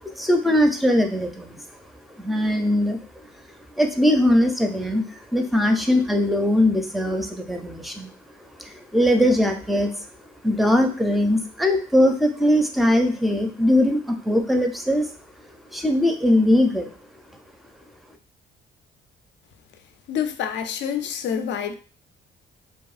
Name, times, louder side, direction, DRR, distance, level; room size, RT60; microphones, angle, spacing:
voice 1, 0.0-1.6 2.1-3.3 3.8-8.1 8.6-9.9 10.4-15.1 15.7-16.9, left 1 dB, ahead, 0.4 m, -21 dB
voice 2, 20.1-21.7, left 8 dB, 65° left, 0.4 m, -27 dB
2.8 x 2.5 x 2.4 m
cardioid pair, 90°, 20 cm